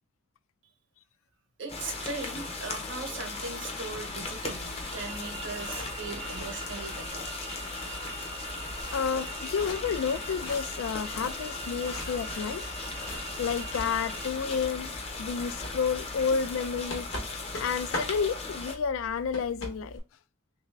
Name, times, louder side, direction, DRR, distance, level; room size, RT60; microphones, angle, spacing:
voice 1, 1.6-7.3, right 3 dB, 65° right, 0.8 m, -39 dB
sound 1, 1.7-18.8, left 3 dB, 30° left, 0.6 m, -38 dB
sound 2, 3.8-20.0, left 1 dB, 60° left, 1.0 m, -43 dB
sound 3, 4.9-14.3, right 4 dB, 25° right, 0.3 m, -43 dB
voice 2, 8.9-12.6 13.4-14.9 15.2-17.1 17.6-20.0, left 6 dB, 85° left, 0.3 m, -30 dB
3.2 x 2.6 x 3.2 m
head